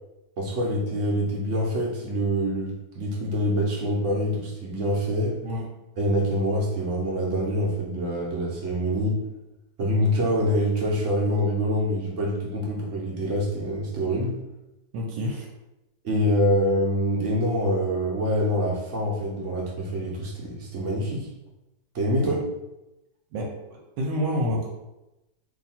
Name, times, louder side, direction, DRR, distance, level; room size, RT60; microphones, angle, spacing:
voice 1, 0.4-5.4 6.0-9.2 9.8-14.3 16.0-21.3 21.9-22.4, equal, 55° right, -2 dB, 0.9 m, -25 dB
voice 2, 14.9-15.5 22.2-22.4 23.3-24.7, equal, 85° right, 0 dB, 1.3 m, -29 dB
2.8 x 2.7 x 4.2 m, 0.95 s
omnidirectional pair, 1.9 m